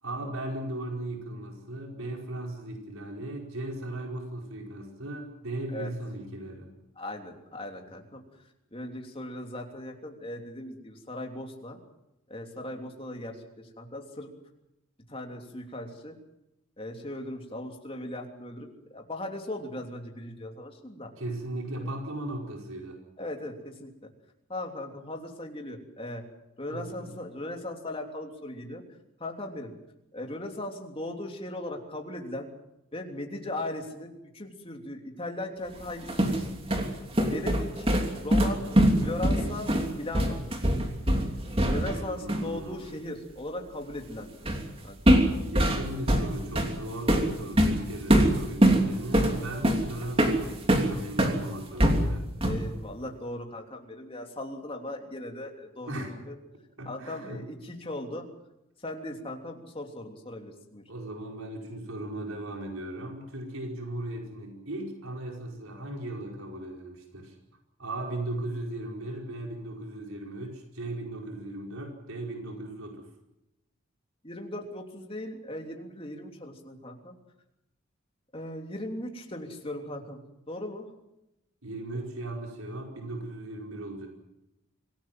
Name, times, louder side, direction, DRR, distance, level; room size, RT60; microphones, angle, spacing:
voice 1, 0.0-6.7 21.2-23.0 26.7-27.2 41.8-42.9 45.4-52.3 55.9-56.1 56.8-57.4 60.9-67.4 67.8-73.1 81.6-84.1, right 1 dB, 85° right, 1 dB, 5.2 m, -37 dB
voice 2, 6.9-8.2 8.7-11.8 12.3-14.3 15.1-16.1 16.8-21.1 23.2-23.9 24.5-26.2 26.6-28.8 29.2-29.7 30.1-32.5 32.9-36.4 37.2-37.9 38.2-38.6 39.0-40.4 41.7-44.5 44.8-45.0 52.4-56.3 56.8-58.2 58.8-60.8 74.2-77.1 78.3-80.2 80.5-80.9 81.9-82.1, left 1 dB, 25° left, 2 dB, 3.2 m, -38 dB
sound 1, 35.8-42.0 42.3-42.5 44.5-44.7 45.1-51.4 51.8-52.7, equal, 25° right, 3.0 m, -23 dB
26.5 x 18.0 x 7.7 m, 0.88 s
head